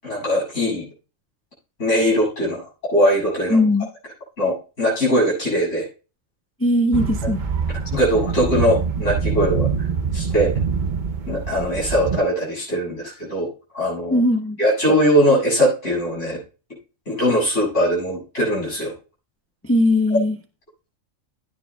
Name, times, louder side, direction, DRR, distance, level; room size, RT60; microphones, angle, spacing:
voice 1, 0.0-0.9 1.8-3.6 4.4-5.9 7.9-9.7 10.1-10.5 11.3-13.5 13.7-14.2 14.6-16.4 17.1-18.9, equal, 65° left, -6 dB, 7.1 m, -20 dB
voice 2, 3.5-3.9 6.6-7.4 14.1-14.6 19.6-20.4, left 1 dB, 15° left, 6 dB, 0.7 m, -19 dB
sound 1, 6.9-12.2, right 5 dB, 45° right, 0.8 m, -24 dB
16.5 x 9.5 x 2.3 m, 0.34 s
omnidirectional pair, 1.4 m